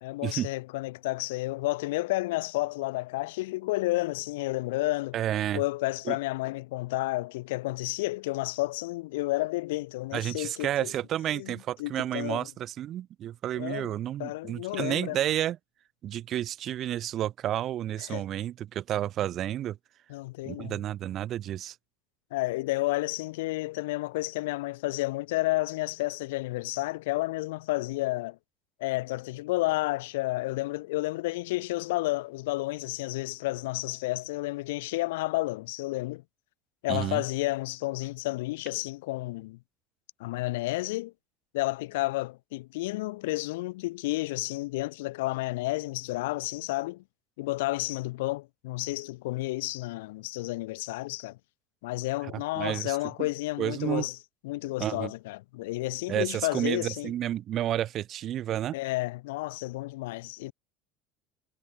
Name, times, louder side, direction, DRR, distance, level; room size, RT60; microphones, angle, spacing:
voice 1, 0.0-5.2 5.5-10.9 11.3-12.5 13.5-13.9 14.2-15.2 18.1-18.3 20.1-20.8 22.3-28.4 28.8-36.2 36.8-39.6 40.2-41.1 41.5-47.0 47.4-51.4 51.8-54.2 54.4-57.1 58.7-60.5, left 20 dB, 90° left, 1.4 m, -31 dB
voice 2, 5.1-5.6 6.1-6.2 10.1-15.6 16.0-19.8 20.4-21.8 36.9-37.2 52.3-53.3 53.6-54.1 54.8-55.1 56.1-58.8, right 12 dB, 45° right, 1.7 m, -31 dB
supercardioid pair, 115°, 0 cm